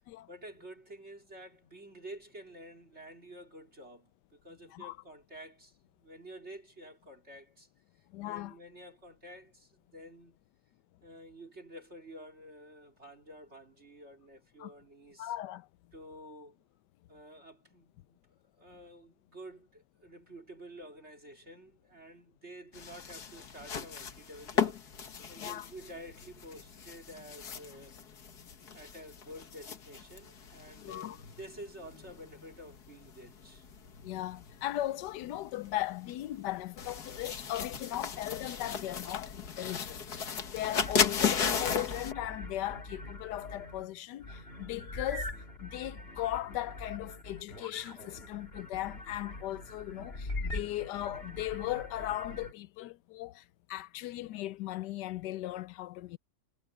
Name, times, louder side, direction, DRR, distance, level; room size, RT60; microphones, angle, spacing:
voice 1, 0.3-7.7 8.0-10.4 11.0-15.3 15.9-16.6 17.1-28.0 28.7-33.7, right 1 dB, 40° right, 3.5 m, -50 dB
voice 2, 8.1-8.5 14.6-14.7 15.2-15.7 25.4-25.7 30.8-31.2 34.0-56.2, left 15 dB, 85° left, 1.2 m, -38 dB
sound 1, 22.7-42.1, left 6 dB, 65° left, 2.1 m, -36 dB
sound 2, 40.7-43.9 44.2-52.5, left 2 dB, 35° left, 2.6 m, -43 dB
omnidirectional pair, 1.8 m